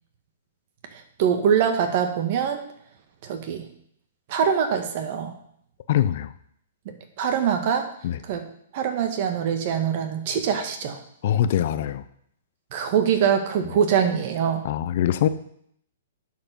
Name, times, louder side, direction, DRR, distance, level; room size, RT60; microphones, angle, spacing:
voice 1, 0.9-2.6 3.2-3.7 4.3-5.3 6.9-7.9 8.2-8.5 8.7-11.0 12.7-14.7, right 7 dB, 50° right, 6 dB, 1.6 m, -23 dB
voice 2, 5.9-6.3 8.0-8.2 11.2-12.0 14.6-15.3, left 11 dB, 55° left, 12 dB, 0.6 m, -23 dB
10.5 x 4.9 x 5.4 m, 0.68 s
hypercardioid pair, 130°, 0 cm